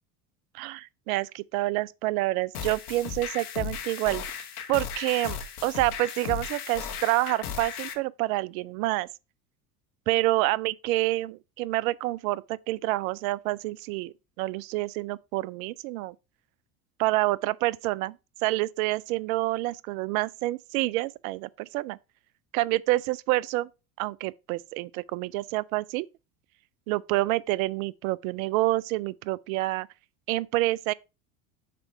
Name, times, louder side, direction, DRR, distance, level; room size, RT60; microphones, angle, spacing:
voice 1, 0.5-4.2 4.7-9.1 10.1-16.1 17.0-18.1 18.4-22.0 22.5-23.7 24.0-26.1 26.9-29.9 30.3-30.9, right 18 dB, 70° right, 0.5 m, -28 dB
sound 1, 2.5-7.9, left 8 dB, 80° left, 1.2 m, -36 dB
6.1 x 4.5 x 4.4 m
hypercardioid pair, 80°, 44 cm